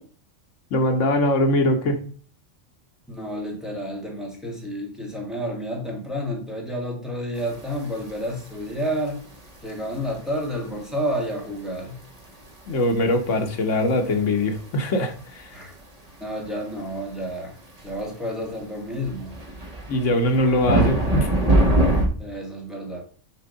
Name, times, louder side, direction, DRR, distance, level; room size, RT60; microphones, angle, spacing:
voice 1, 0.7-2.0 12.7-15.5 19.9-21.3, left 1 dB, 75° left, 5 dB, 1.4 m, -22 dB
voice 2, 3.1-9.2 9.6-12.0 15.5-15.8 16.2-17.5 17.8-19.4 22.2-23.0, equal, ahead, -1 dB, 1.7 m, -30 dB
sound 1, 7.4-10.1 10.4-10.7 11.4-11.8 12.2-14.6 15.0-15.8 17.8-17.9 18.5-18.6 19.0-22.1, right 1 dB, 35° right, 1.2 m, -23 dB
6.6 x 3.7 x 5.2 m, 0.41 s
omnidirectional pair, 1.3 m